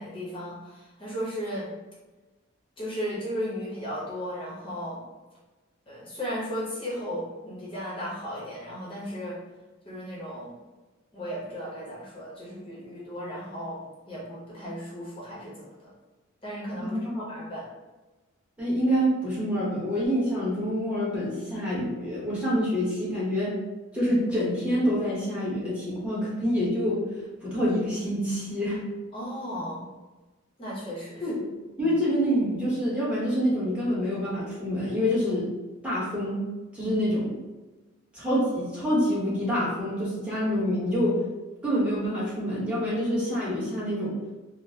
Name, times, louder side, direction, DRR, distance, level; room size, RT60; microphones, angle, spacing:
voice 1, 0.0-1.7 2.8-5.0 5.9-9.4 9.8-10.5 11.1-15.9 16.4-17.7 29.1-29.9 30.6-31.3 31.8-31.9 36.8-36.9, equal, 25° left, -6 dB, 0.9 m, -35 dB
voice 2, 16.8-17.4 18.6-23.6 23.9-27.0 27.4-28.8 31.2-31.5 31.8-35.5 35.8-36.4 36.7-37.4 38.1-41.2 41.6-44.2, equal, 5° right, -9 dB, 1.0 m, -26 dB
3.6 x 2.1 x 2.7 m, 1.2 s
head